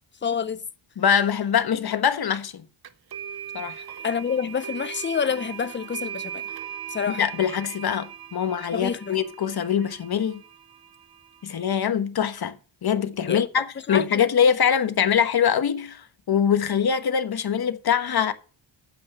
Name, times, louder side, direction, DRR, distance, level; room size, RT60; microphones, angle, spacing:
voice 1, 0.2-0.6 4.0-6.5 6.9-7.2 8.7-9.2 13.3-14.3, left 6 dB, 25° left, 0.6 m, -28 dB
voice 2, 1.0-2.6 3.5-3.8 7.2-10.4 11.4-12.6 12.8-18.3, left 8 dB, 50° left, 1.3 m, -23 dB
sound 1, 2.8-11.7, right 9 dB, 50° right, 0.9 m, -39 dB
9.2 x 7.8 x 6.7 m
cardioid pair, 105°, 47 cm